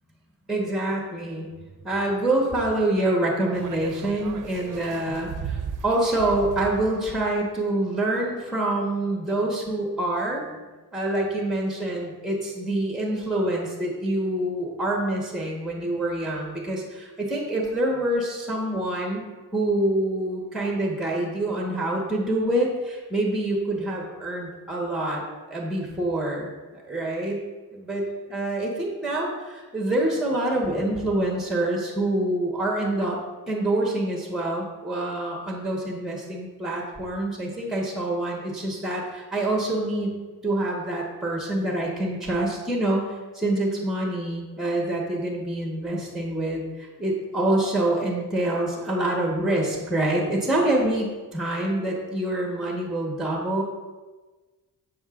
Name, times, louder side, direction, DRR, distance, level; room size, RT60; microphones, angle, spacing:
voice 1, 0.5-1.5 1.8-10.6 10.9-19.2 19.5-25.2 25.5-26.5 26.8-27.4 27.7-28.0 28.3-33.2 33.5-40.2 40.4-53.6, right 1 dB, ahead, -2 dB, 1.2 m, -26 dB
sound 1, 3.5-7.3, right 6 dB, 55° right, 0.5 m, -36 dB
7.6 x 7.5 x 2.5 m, 1.3 s
cardioid pair, 80°, 38 cm